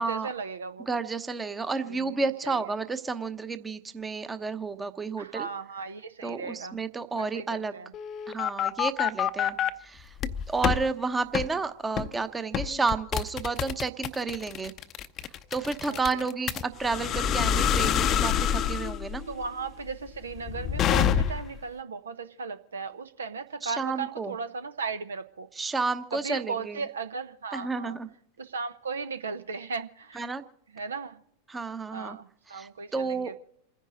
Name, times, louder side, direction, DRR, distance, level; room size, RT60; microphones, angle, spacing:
voice 1, 0.0-0.9 1.8-2.7 5.2-6.8 7.1-7.9 15.9-16.3 19.3-25.5 26.1-28.0 28.4-30.3 30.7-31.2 31.9-33.4, right 5 dB, 70° right, 12 dB, 0.8 m, -36 dB
voice 2, 0.9-5.5 6.2-7.8 8.3-10.1 10.5-14.7 15.5-19.2 23.6-24.3 25.5-26.8 27.5-28.1 30.2-30.4 31.5-32.2 32.5-33.3, right 4 dB, 15° right, 11 dB, 1.0 m, -31 dB
sound 1, 7.9-9.7 10.2-10.8 11.3-11.5 12.0-12.2 12.5-21.6, left 9 dB, 30° left, 0.7 m, -27 dB
28.5 x 10.5 x 3.9 m, 0.71 s
figure-of-eight pair, 90°, 0 cm